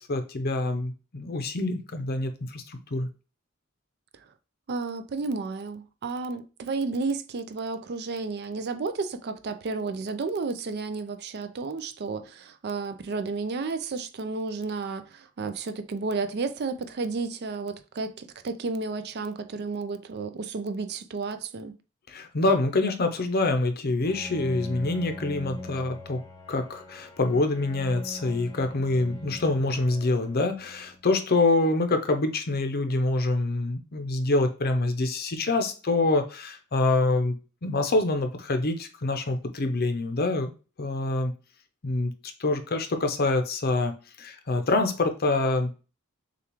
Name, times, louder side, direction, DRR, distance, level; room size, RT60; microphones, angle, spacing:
voice 1, 0.0-3.1 22.1-26.2 26.5-37.4 37.6-40.5 40.8-41.3 41.8-42.1 42.4-45.7, left 2 dB, 50° left, 0.7 m, -26 dB
voice 2, 4.7-21.7, right 4 dB, 50° right, 0.5 m, -32 dB
Bowed string instrument, 24.0-31.1, left 1 dB, 15° left, 0.8 m, -42 dB
6.7 x 2.4 x 3.0 m
head